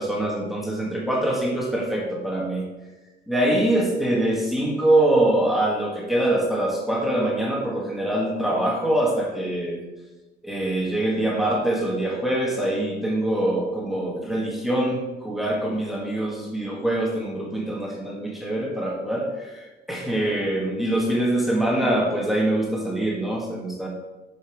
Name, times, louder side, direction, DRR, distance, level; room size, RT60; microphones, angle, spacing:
voice 1, 0.0-2.6 3.3-9.8 10.4-23.9, right 1 dB, ahead, -3 dB, 1.6 m, -24 dB
8.2 x 5.4 x 5.2 m, 1.1 s
cardioid pair, 145°, 18 cm